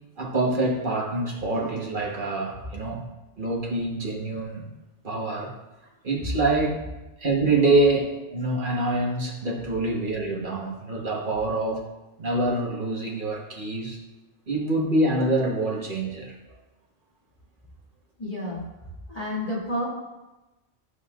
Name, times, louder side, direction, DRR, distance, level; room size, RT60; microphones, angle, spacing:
voice 1, 0.2-3.0 3.4-4.7 5.0-5.5 6.0-6.7 7.2-11.9 12.2-14.0 14.5-16.3, right 2 dB, 45° right, -1 dB, 1.4 m, -25 dB
voice 2, 18.2-18.6 19.1-19.9, left 1 dB, 30° left, -6 dB, 2.9 m, -30 dB
13.5 x 5.3 x 2.4 m, 1.1 s
omnidirectional pair, 1.2 m